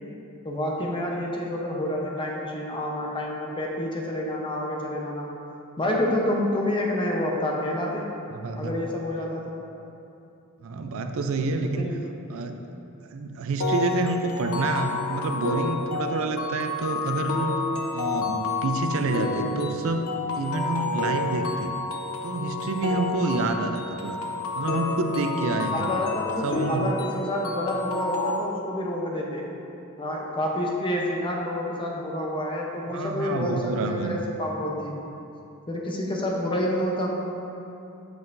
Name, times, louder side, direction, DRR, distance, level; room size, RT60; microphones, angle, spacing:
voice 1, 0.4-5.3 5.8-8.0 8.6-9.6 11.6-12.0 25.7-29.5 30.0-35.0 35.7-37.2, left 1 dB, 25° left, -2 dB, 0.8 m, -28 dB
voice 2, 8.3-8.8 10.6-11.9 12.3-12.6 13.1-17.5 17.9-20.1 20.3-21.7 22.2-24.2 24.6-25.9 26.4-27.0 32.9-34.2, right 3 dB, 65° right, 6 dB, 0.4 m, -28 dB
sound 1, 13.6-28.4, left 3 dB, 75° left, 0.7 m, -29 dB
8.0 x 5.5 x 2.6 m, 2.8 s
head